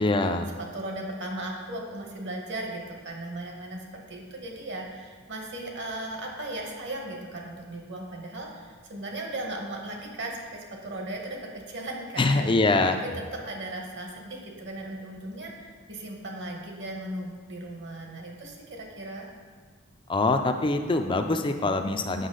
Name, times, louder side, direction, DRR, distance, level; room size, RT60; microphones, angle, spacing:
voice 1, 0.0-0.5 12.2-13.0 20.1-22.3, left 2 dB, 25° left, 6 dB, 0.4 m, -24 dB
voice 2, 0.6-12.5 12.9-19.3, right 1 dB, 55° right, 1 dB, 1.2 m, -37 dB
8.1 x 5.7 x 3.8 m, 1.5 s
head